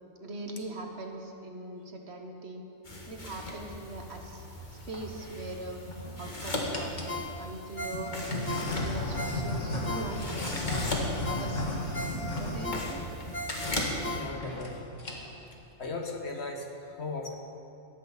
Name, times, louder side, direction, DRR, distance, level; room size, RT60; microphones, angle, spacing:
voice 1, 0.2-2.6 3.1-5.8 6.2-7.1 7.4-11.9 12.4-13.0, right 2 dB, 60° right, 3 dB, 1.6 m, -41 dB
sound 1, 2.9-14.2, left 1 dB, 40° left, 1.9 m, -38 dB
sound 2, 4.6-5.0 5.7-6.2 6.7-7.2 7.9-13.3 13.6-13.8 14.1-14.2 14.4-14.7 15.0-15.4, left 1 dB, 80° left, 2.2 m, -34 dB
Ringtone, 7.1-10.5 10.9-11.0 11.2-14.7 15.1-15.2, left 2 dB, 10° left, 0.9 m, -39 dB
voice 2, 14.1-14.9 15.8-17.3, left 3 dB, 60° left, 2 dB, 1.7 m, -37 dB
17.5 x 14.0 x 4.1 m, 2.8 s
omnidirectional pair, 1.3 m